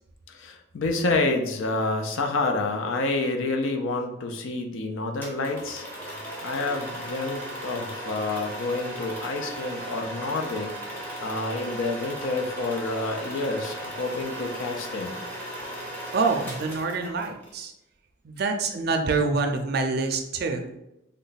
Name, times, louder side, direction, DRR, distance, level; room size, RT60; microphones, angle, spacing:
voice 1, 0.3-5.8 6.4-10.8 11.2-15.2, left 2 dB, 75° left, 4 dB, 0.5 m, -28 dB
sound 1, 5.2-17.5, right 1 dB, 10° left, 0.6 m, -37 dB
voice 2, 16.1-17.7 18.2-20.8, right 4 dB, 50° right, 5 dB, 0.4 m, -26 dB
3.1 x 2.2 x 3.9 m, 0.88 s
head